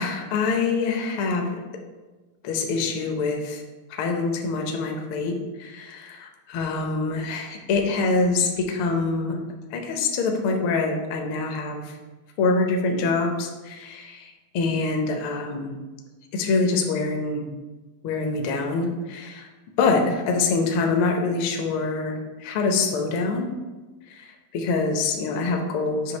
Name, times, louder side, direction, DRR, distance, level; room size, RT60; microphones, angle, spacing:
voice 1, 0.0-1.6 2.4-3.6 3.9-9.4 9.7-11.9 12.4-15.8 16.3-17.5 18.0-19.5 19.8-23.5 24.1-26.2, left 3 dB, 75° left, 2 dB, 1.2 m, -25 dB
7.8 x 2.8 x 5.3 m, 1.2 s
omnidirectional pair, 3.4 m